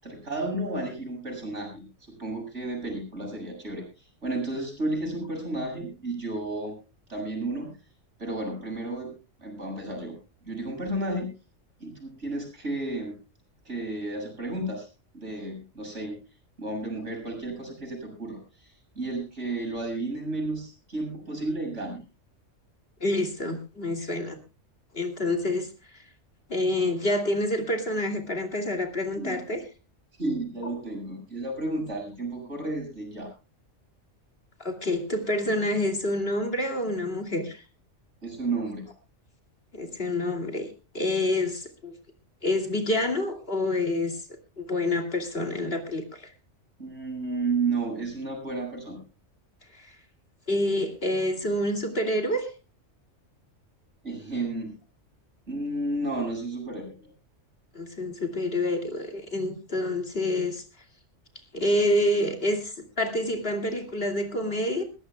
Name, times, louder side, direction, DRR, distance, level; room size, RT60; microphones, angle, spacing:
voice 1, 0.0-3.8 4.2-6.7 7.1-7.7 8.2-9.1 9.4-10.1 10.4-11.3 11.8-13.2 13.7-14.9 15.1-16.2 16.6-18.4 18.9-22.0 29.2-29.4 30.2-33.3 38.2-38.9 46.8-49.0 54.0-54.7 55.5-57.1, right 2 dB, 65° right, 2 dB, 7.8 m, -32 dB
voice 2, 23.0-24.4 24.9-25.7 26.5-29.6 30.6-30.7 34.6-37.6 39.7-40.7 40.9-41.9 42.4-44.2 44.6-46.3 49.7-49.9 50.5-52.5 57.7-60.6 61.5-64.8, left 1 dB, 50° left, 4 dB, 2.8 m, -27 dB
21.5 x 17.0 x 2.2 m, 0.32 s
omnidirectional pair, 1.3 m